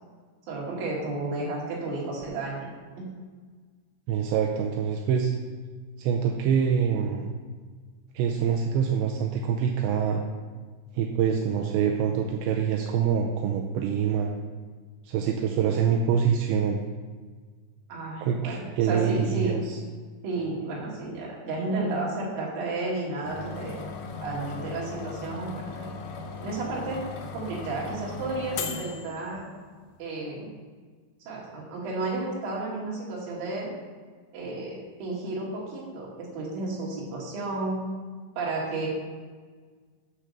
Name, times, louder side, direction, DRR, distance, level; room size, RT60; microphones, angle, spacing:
voice 1, 0.5-2.7 3.0-3.1 17.9-19.6 20.2-23.7 24.2-25.9 26.4-27.0 27.3-29.5 30.0-30.5 31.3-33.7 34.3-37.8 38.4-38.9, right 2 dB, 55° right, -4 dB, 3.5 m, -32 dB
voice 2, 4.1-5.3 6.0-7.3 8.1-10.2 11.0-14.3 15.1-16.8 18.2-19.8, right 7 dB, 80° right, 2 dB, 2.8 m, -25 dB
sound 1, 23.2-29.8, left 4 dB, 85° left, 3.4 m, -38 dB
7.8 x 6.3 x 6.6 m, 1.5 s
omnidirectional pair, 5.4 m